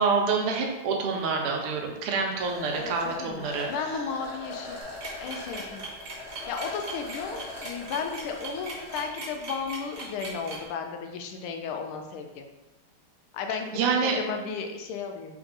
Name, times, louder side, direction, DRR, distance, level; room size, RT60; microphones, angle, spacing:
voice 1, 0.0-3.7 13.7-14.2, right 4 dB, 85° right, 2 dB, 1.7 m, -27 dB
sound 1, 2.4-9.0, left 2 dB, 60° left, 1.3 m, -41 dB
voice 2, 2.7-4.8 5.2-5.8 6.5-12.4 13.3-15.4, left 5 dB, 80° left, 4 dB, 1.4 m, -34 dB
sound 2, 4.8-10.6, right 3 dB, 45° right, 1.5 m, -39 dB
4.0 x 3.4 x 3.8 m, 1.1 s
omnidirectional pair, 2.4 m